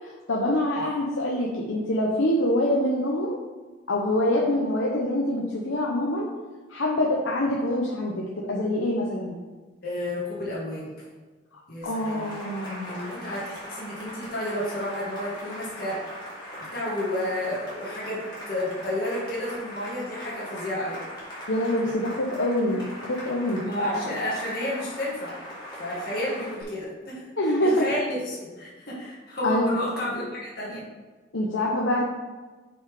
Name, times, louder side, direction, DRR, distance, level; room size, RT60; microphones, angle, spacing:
voice 1, 0.0-3.4 3.9-6.3 6.7-8.2 8.5-9.4 11.8-13.1 21.5-23.6 27.4-27.9 29.4-29.7 31.3-32.0, left 1 dB, 90° left, -2 dB, 0.9 m, -25 dB
voice 2, 9.8-10.9 11.7-12.3 12.9-21.0 23.6-25.3 25.8-27.2 27.6-30.8, left 1 dB, 50° left, -6 dB, 2.0 m, -31 dB
Cheering / Applause, 11.8-26.6, equal, 25° left, 2.3 m, -40 dB
5.9 x 5.5 x 4.9 m, 1.3 s
head